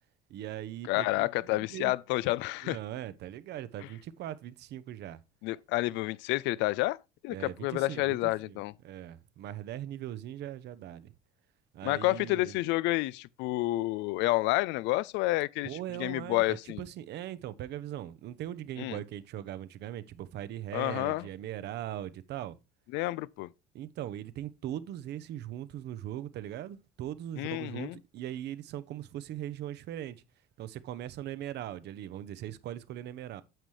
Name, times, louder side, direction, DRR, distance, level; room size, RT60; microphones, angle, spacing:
voice 1, 0.3-1.9 2.6-5.2 7.3-8.2 8.5-8.6 8.8-11.1 11.7-12.5 15.6-22.6 23.7-30.2 30.6-33.4, right 12 dB, 60° right, 0.8 m, -40 dB
voice 2, 0.9-2.8 5.4-7.0 7.2-8.7 11.8-16.8 18.8-19.0 20.7-21.3 22.9-23.5 27.4-28.0, left 19 dB, 65° left, 0.4 m, -29 dB
9.1 x 7.4 x 3.1 m
hypercardioid pair, 60°, 20 cm